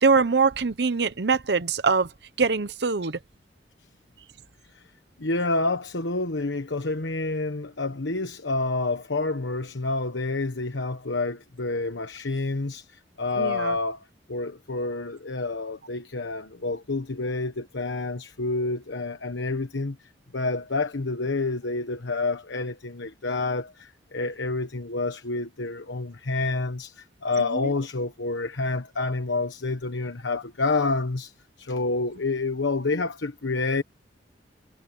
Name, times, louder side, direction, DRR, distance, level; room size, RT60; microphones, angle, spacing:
voice 1, 0.0-2.1 2.4-3.2 13.4-13.7 27.5-27.7, right 4 dB, 65° right, 0.8 m, -23 dB
voice 2, 5.2-20.0 20.3-33.8, left 3 dB, 85° left, 1.2 m, -28 dB
head